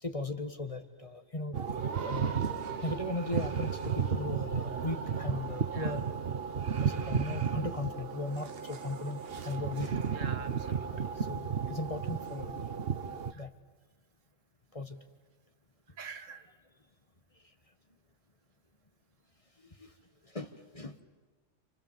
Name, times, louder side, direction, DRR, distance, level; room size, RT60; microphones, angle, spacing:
voice 1, 0.0-1.6 2.0-2.3 2.8-6.0 6.8-10.0 11.2-12.6 13.3-13.5 14.7-15.0 19.6-19.9 20.2-21.0, left 2 dB, 25° left, 7 dB, 1.4 m, -38 dB
sound 1, 1.5-13.3, right 6 dB, 50° right, 1.2 m, -34 dB
voice 2, 9.9-11.2 13.3-13.5 15.9-16.5, right 5 dB, 80° right, 10 dB, 1.7 m, -46 dB
28.5 x 28.0 x 7.3 m, 1.3 s
omnidirectional pair, 1.3 m